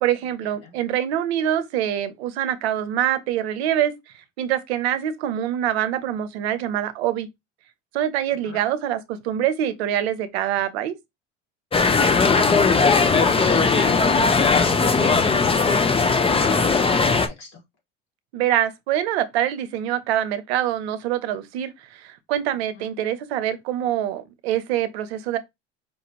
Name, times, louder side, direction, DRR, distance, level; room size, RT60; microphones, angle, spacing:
voice 1, 0.0-3.9 4.4-7.3 7.9-11.0 18.3-25.4, right 11 dB, 85° right, 0.7 m, -25 dB
sound 1, 11.7-17.3, left 4 dB, 20° left, 0.6 m, -18 dB
voice 2, 12.2-17.6 22.7-22.9, left 4 dB, 55° left, 2.3 m, -36 dB
5.0 x 2.5 x 2.9 m
supercardioid pair, 85°, 31 cm